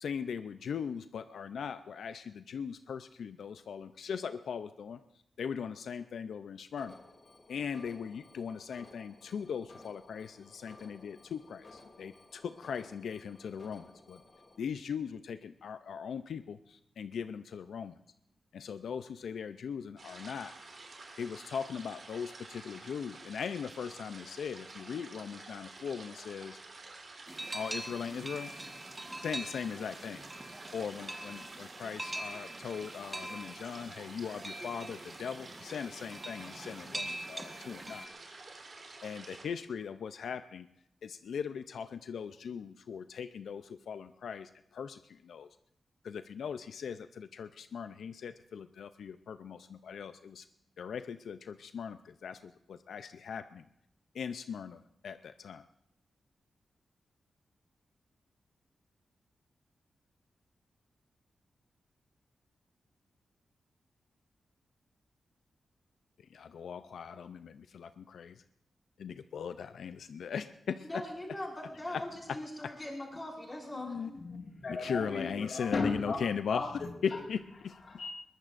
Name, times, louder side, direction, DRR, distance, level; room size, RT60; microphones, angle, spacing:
voice 1, 0.0-5.0 5.4-7.0 7.5-14.2 14.6-18.0 18.5-20.5 21.2-26.6 27.5-28.7 29.2-30.2 30.7-38.1 39.0-40.7 41.0-45.5 46.0-50.5 50.8-53.7 54.1-55.7 66.2-68.4 69.0-71.0 71.9-72.0 73.7-74.1 74.7-76.7 77.0-77.8, left 7 dB, 90° left, 10 dB, 0.5 m, -39 dB
Alarm, 6.8-14.6, left 2 dB, 40° left, 2.6 m, -56 dB
sound 1, 20.0-39.4, right 3 dB, 50° right, 3.3 m, -50 dB
sound 2, 27.3-38.1, right 1 dB, 15° right, 1.3 m, -43 dB
voice 2, 70.9-74.3, left 1 dB, 20° left, -3 dB, 5.4 m, -41 dB
voice 3, 74.2-76.2 76.5-77.2 77.9-78.1, left 3 dB, 60° left, 0 dB, 1.9 m, -36 dB
22.0 x 20.0 x 2.5 m, 0.78 s
wide cardioid pair, 130°, 0 cm